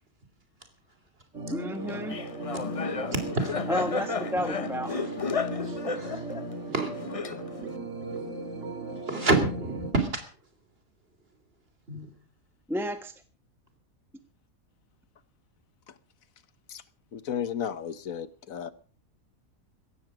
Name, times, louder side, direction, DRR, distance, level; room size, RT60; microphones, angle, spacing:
sound 1, 1.3-9.9, right 1 dB, 60° right, 2.2 m, -37 dB
voice 1, 1.5-2.2 3.7-4.9 12.7-13.1, equal, ahead, 1.0 m, -31 dB
Laughter, 1.9-7.8, left 5 dB, 30° left, 0.7 m, -33 dB
voice 2, 3.1-3.5 5.0-5.1 5.6-6.2 6.7-6.9 9.1-10.2 11.9-12.1, right 3 dB, 45° right, 3.2 m, -28 dB
voice 3, 17.1-18.7, left 8 dB, 75° left, 1.4 m, -33 dB
17.0 x 14.0 x 4.9 m
omnidirectional pair, 1.5 m